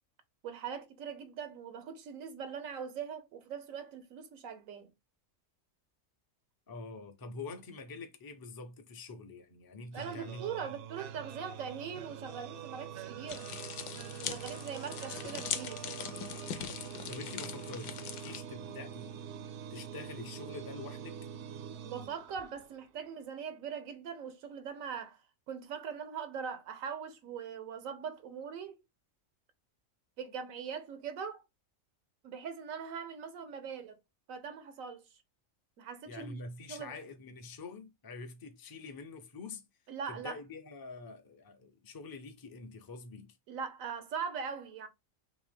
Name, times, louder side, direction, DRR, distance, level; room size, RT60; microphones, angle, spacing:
voice 1, 0.4-4.9 9.9-13.5 14.2-15.8 21.8-28.8 30.2-31.4 32.2-34.0 34.3-35.1 35.8-36.4 36.7-37.0 39.9-40.4 43.5-44.9, right 6 dB, 90° right, 1.2 m, -41 dB
voice 2, 6.7-10.7 17.1-19.2 19.7-21.3 36.1-39.7 40.1-43.4, left 3 dB, 25° left, 0.4 m, -46 dB
sound 1, 9.9-22.9, right 8 dB, 70° right, 0.8 m, -45 dB
sound 2, 13.3-18.4, left 9 dB, 85° left, 1.0 m, -41 dB
3.6 x 3.0 x 3.4 m
omnidirectional pair, 1.4 m